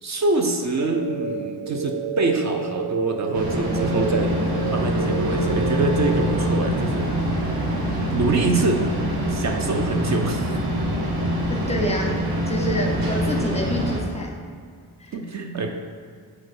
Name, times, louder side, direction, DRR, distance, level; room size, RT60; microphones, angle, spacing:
voice 1, 0.0-4.4 4.7-7.2 8.1-8.8 9.3-10.6 12.9-13.0 15.1-15.7, right 2 dB, 45° right, 3 dB, 0.6 m, -25 dB
sound 1, 0.7-6.4, right 4 dB, 85° right, 0.9 m, -29 dB
sound 2, 3.3-14.0, equal, 65° right, 1.5 m, -25 dB
voice 2, 11.5-14.4 15.0-15.1, equal, 15° left, 0 dB, 0.7 m, -28 dB
6.4 x 4.3 x 6.6 m, 2.1 s
wide cardioid pair, 175°, 39 cm